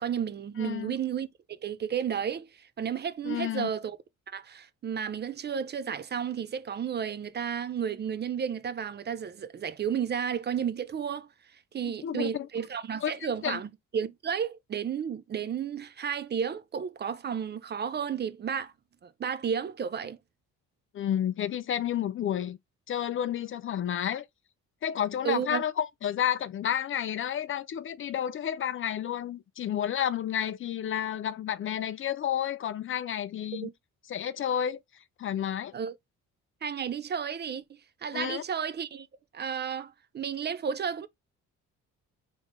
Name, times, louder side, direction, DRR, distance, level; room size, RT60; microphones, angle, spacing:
voice 1, 0.0-4.0 4.3-11.3 11.7-18.7 19.0-20.2 25.2-25.6 33.5-33.7 35.7-36.0 36.6-39.1 39.3-41.1, right 7 dB, 35° right, 0.4 m, -32 dB
voice 2, 0.6-1.0 3.2-3.7 11.8-12.5 13.0-13.1 13.4-13.6 20.9-22.6 22.9-24.3 24.8-33.7 34.1-34.8 35.2-35.7 38.1-38.4, left 10 dB, 45° left, 0.4 m, -31 dB
3.5 x 2.5 x 3.2 m
cardioid pair, 90°, 30 cm